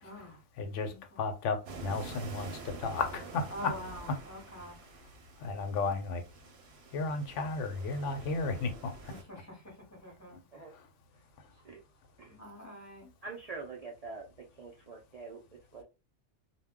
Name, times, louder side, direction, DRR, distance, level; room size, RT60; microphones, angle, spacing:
voice 1, 0.0-0.4 0.9-1.2 3.5-4.8 9.1-10.4 12.3-13.1, equal, 15° left, 0.7 m, -46 dB
voice 2, 0.6-1.6 1.8-3.7 5.4-6.2 6.9-8.9 10.3-10.4 10.7-10.8, left 4 dB, 70° left, 0.9 m, -34 dB
sound 1, 1.7-9.2, right 3 dB, 60° right, 0.8 m, -47 dB
voice 3, 13.2-14.3 14.6-15.8, right 4 dB, 80° right, 0.3 m, -45 dB
2.3 x 2.1 x 3.5 m
omnidirectional pair, 1.4 m